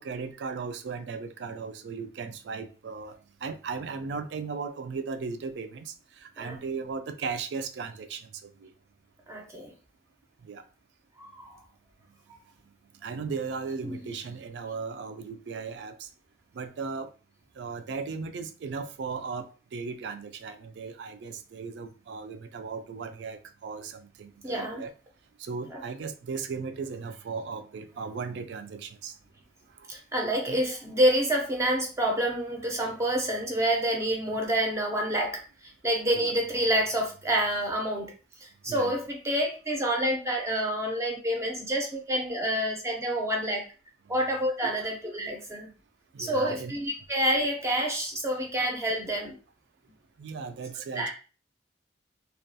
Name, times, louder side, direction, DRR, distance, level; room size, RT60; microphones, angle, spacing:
voice 1, 0.0-3.2 3.4-5.9 6.2-8.7 10.4-10.6 13.0-16.1 16.5-17.1 17.6-24.9 25.4-29.1 30.5-30.6 34.3-34.4 36.2-36.3 38.7-39.0 44.6-44.9 46.1-46.7 50.2-51.1, right 5 dB, 70° right, 0.3 m, -37 dB
voice 2, 9.3-9.7 11.2-11.6 13.8-14.0 24.4-24.8 25.7-25.8 29.9-35.4 35.8-38.1 38.4-43.6 44.1-45.7 46.2-49.4 50.9-51.1, right 1 dB, 15° right, 0.5 m, -28 dB
2.3 x 2.2 x 2.6 m
head